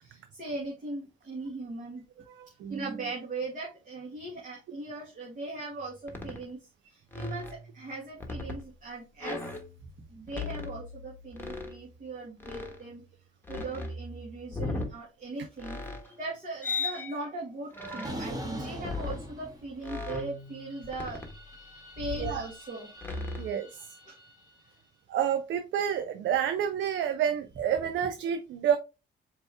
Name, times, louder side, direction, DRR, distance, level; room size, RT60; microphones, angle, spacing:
voice 1, 0.0-2.0 2.5-9.4 10.1-13.0 13.5-15.8 16.2-21.2 21.6-22.9 24.1-24.2, right 2 dB, 40° right, -3 dB, 1.7 m, -39 dB
voice 2, 2.3-3.0 22.2-22.4 23.4-23.8 25.1-28.8, right 9 dB, 70° right, 9 dB, 0.5 m, -29 dB
sound 1, 5.7-5.8 6.1-6.4 7.1-8.7 9.2-10.0 10.3-11.8 12.4-13.0 13.4-14.9 15.6-16.2 16.6-17.3 17.7-18.3 18.8-19.2 19.8-21.6 21.9-22.5 23.0-23.5, left 3 dB, 10° left, 1.2 m, -38 dB
sound 2, 18.0-20.0 20.3-24.6, equal, 20° right, 1.4 m, -43 dB
4.5 x 2.9 x 3.4 m, 0.28 s
cardioid pair, 90°, 20 cm